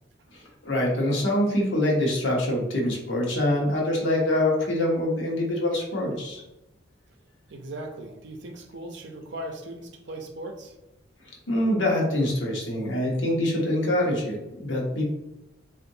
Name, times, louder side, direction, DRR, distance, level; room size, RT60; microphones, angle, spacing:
voice 1, 0.3-6.4 11.5-15.0, left 1 dB, 80° left, -1 dB, 0.9 m, -25 dB
voice 2, 7.5-10.7, right 1 dB, 65° right, 3 dB, 0.6 m, -38 dB
3.8 x 2.5 x 2.6 m, 0.92 s
head